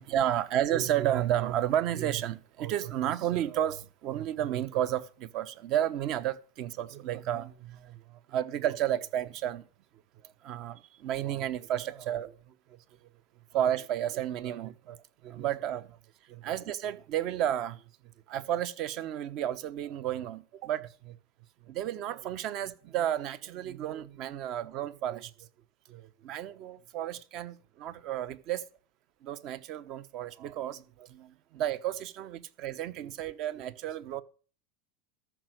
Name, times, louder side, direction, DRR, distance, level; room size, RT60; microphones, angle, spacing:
voice 1, 0.0-8.0 8.3-9.6 10.4-12.3 13.5-15.0 15.2-15.9 16.3-17.8 18.3-21.2 21.7-25.3 25.9-28.6 29.2-34.2, right 11 dB, 50° right, 1.1 m, -32 dB
13.5 x 6.1 x 6.5 m
supercardioid pair, 135°, 0 cm